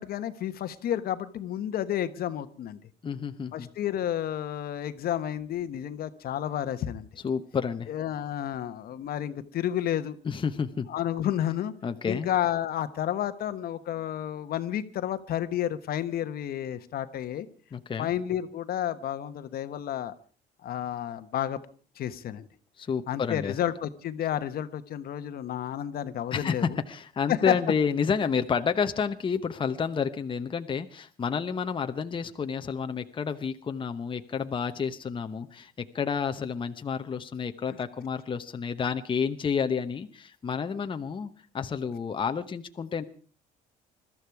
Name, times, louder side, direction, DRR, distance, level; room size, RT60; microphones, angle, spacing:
voice 1, 0.0-2.8 3.5-7.1 7.9-10.2 10.9-11.7 12.1-17.5 18.0-20.1 20.6-21.6 22.0-22.5 23.1-26.8 27.3-27.5 37.7-37.8, left 11 dB, 65° left, 11 dB, 1.2 m, -31 dB
voice 2, 3.0-3.7 7.2-7.9 10.2-10.9 11.8-12.3 17.7-18.1 22.8-23.5 26.3-43.0, left 6 dB, 30° left, 7 dB, 1.0 m, -30 dB
21.5 x 13.5 x 4.7 m, 0.41 s
cardioid pair, 110°, 17 cm